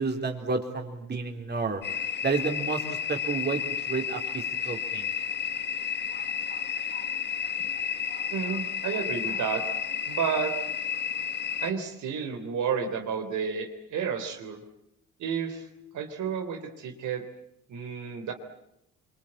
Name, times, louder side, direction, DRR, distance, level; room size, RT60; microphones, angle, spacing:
voice 1, 0.0-1.8 2.2-3.6 3.9-5.1, right 4 dB, 35° right, 2 dB, 3.8 m, -30 dB
sound 1, 1.8-11.7, left 7 dB, 35° left, 1.4 m, -32 dB
voice 2, 8.3-9.6 10.1-10.5 11.6-14.6 15.2-15.6 15.9-17.3 17.7-18.3, right 6 dB, 75° right, 4 dB, 3.5 m, -31 dB
25.0 x 24.5 x 8.9 m, 0.81 s
cardioid pair, 90°, 30 cm